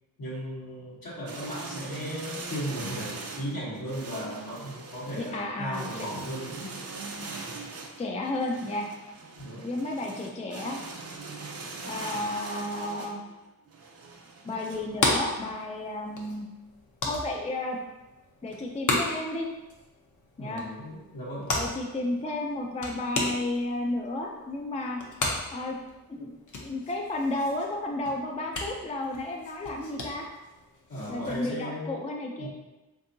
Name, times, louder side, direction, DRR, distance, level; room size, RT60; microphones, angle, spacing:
voice 1, 0.2-6.7 9.4-9.7 20.4-21.5 30.9-32.0 32.4-32.5, equal, 70° left, -7 dB, 1.3 m, -36 dB
sound 1, 1.3-14.8, right 3 dB, 45° right, 0.5 m, -41 dB
voice 2, 5.1-6.1 8.0-8.9 9.6-10.8 11.8-13.2 14.4-16.5 17.0-17.8 18.4-19.5 20.4-20.6 21.6-25.0 25.5-25.8 26.1-26.3 26.6-30.3 31.1-32.5, left 2 dB, 20° left, 1 dB, 0.3 m, -32 dB
sound 2, 14.7-31.5, left 2 dB, 55° left, 0.7 m, -35 dB
3.5 x 2.7 x 2.6 m, 1.1 s
cardioid pair, 65°, 36 cm